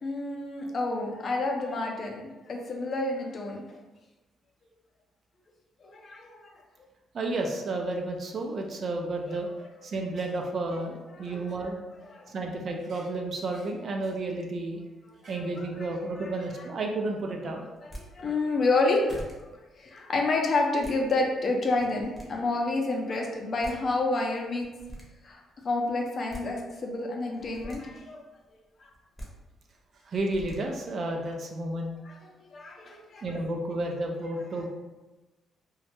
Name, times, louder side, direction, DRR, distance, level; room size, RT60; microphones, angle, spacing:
voice 1, 0.0-3.6 5.8-6.5 11.2-11.4 12.1-12.2 15.6-15.7 16.2-16.3 17.8-19.5 19.8-24.7 25.2-28.2 32.0-33.2, left 2 dB, 50° left, 1 dB, 0.5 m, -29 dB
voice 2, 7.1-11.8 12.3-14.8 15.2-17.7 30.1-31.9 33.2-34.7, right 2 dB, 50° right, 2 dB, 0.4 m, -32 dB
sound 1, 17.7-18.0 18.7-18.8 19.1-19.3 20.5-21.0 21.7-22.2 23.3-23.4 23.6-23.8 24.6-25.0 26.0-26.4 27.3-27.8 28.9-29.3 30.1-30.6, equal, 5° left, 0.7 m, -42 dB
2.2 x 2.0 x 2.9 m, 1.1 s
cardioid pair, 90°, 0 cm